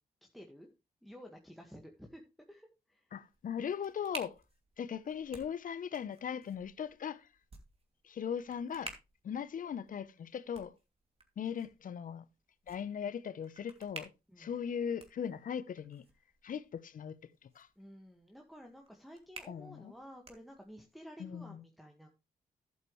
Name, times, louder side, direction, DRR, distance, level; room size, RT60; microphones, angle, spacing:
voice 1, 0.3-0.7 1.0-2.2 2.5-3.2 14.3-14.6 17.8-22.2, equal, ahead, 1.8 m, -52 dB
voice 2, 3.1-4.4 4.8-7.3 8.0-8.9 9.2-10.7 11.4-12.2 12.7-14.1 14.4-16.0 16.4-17.2 17.5-17.7 19.5-19.9 21.2-21.6, left 8 dB, 60° left, 0.9 m, -39 dB
sound 1, 3.2-21.0, right 3 dB, 35° right, 2.7 m, -54 dB
11.0 x 8.2 x 3.2 m
supercardioid pair, 65°, 16 cm